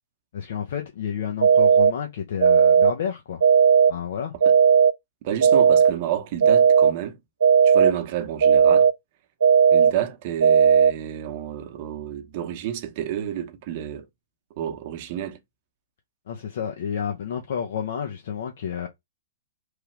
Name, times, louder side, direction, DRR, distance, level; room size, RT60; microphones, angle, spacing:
voice 1, 0.3-3.4 3.9-4.3 16.3-18.9, left 8 dB, 60° left, 0.6 m, -30 dB
sound 1, 1.4-1.9 2.4-2.9 3.4-3.9 4.4-4.9 5.4-5.9 6.4-6.9 7.4-7.9 8.4-8.9 9.4-9.9 10.4-10.9, right 7 dB, 75° right, 0.6 m, -15 dB
voice 2, 5.2-7.2 7.6-8.9 9.7-14.1 14.6-15.4, right 10 dB, 45° right, 0.8 m, -30 dB
3.2 x 2.3 x 3.1 m
hypercardioid pair, 115°, 0 cm